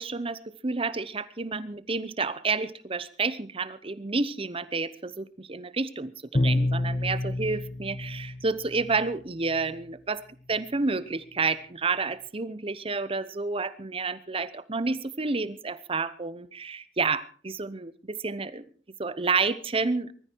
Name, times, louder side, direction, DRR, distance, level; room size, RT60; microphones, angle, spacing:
voice 1, 0.0-10.2 10.5-18.7 19.0-20.1, right 4 dB, 30° right, 16 dB, 0.9 m, -30 dB
Bowed string instrument, 6.3-9.2, left 1 dB, 35° left, 0.8 m, -28 dB
20.5 x 13.5 x 4.6 m, 0.42 s
head